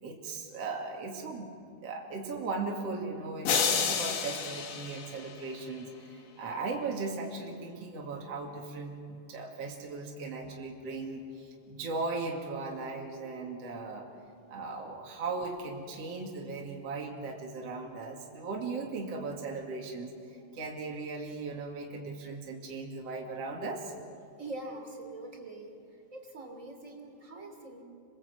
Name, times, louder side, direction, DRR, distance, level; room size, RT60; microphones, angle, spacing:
voice 1, 0.0-14.1 14.5-23.9, right 3 dB, 55° right, 0 dB, 3.3 m, -38 dB
sound 1, 3.5-5.8, left 6 dB, 80° left, 3.3 m, -30 dB
voice 2, 24.4-25.8 26.1-27.8, right 2 dB, 25° right, 4 dB, 3.1 m, -43 dB
27.0 x 23.0 x 8.2 m, 2.6 s
omnidirectional pair, 3.5 m